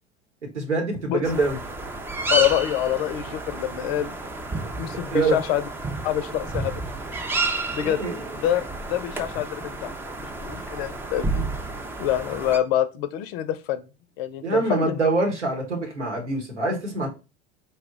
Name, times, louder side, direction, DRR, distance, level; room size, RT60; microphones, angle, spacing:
voice 1, 0.5-1.6 5.1-5.4 7.8-8.2 14.4-17.1, right 3 dB, 90° right, 2 dB, 1.0 m, -24 dB
sound 1, 1.2-12.6, right 2 dB, 5° right, 0.3 m, -31 dB
voice 2, 2.3-4.2 4.8-5.6 6.0-6.7 7.7-8.0 8.4-9.9 10.2-11.5 12.0-13.9 14.2-15.0, left 11 dB, 60° left, 13 dB, 0.5 m, -26 dB
4.3 x 2.1 x 3.6 m, 0.30 s
figure-of-eight pair, 75°, 34 cm